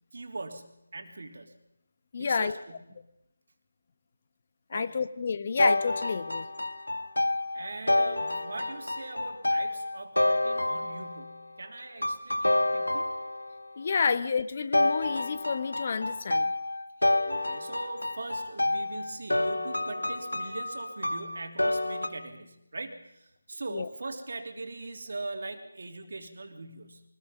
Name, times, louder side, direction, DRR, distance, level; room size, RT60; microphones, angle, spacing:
voice 1, 0.1-1.5 2.2-3.0 4.7-5.0 7.5-13.1 17.0-27.0, right 3 dB, 60° right, 5 dB, 3.2 m, -41 dB
voice 2, 2.1-2.5 4.7-6.5 13.8-16.5 23.7-23.9, left 5 dB, 40° left, 12 dB, 1.1 m, -30 dB
sound 1, 5.6-11.4 12.0-13.7 14.7-22.1, left 1 dB, 85° left, 1.9 m, -28 dB
24.5 x 20.0 x 5.5 m, 0.85 s
figure-of-eight pair, 160°, 0 cm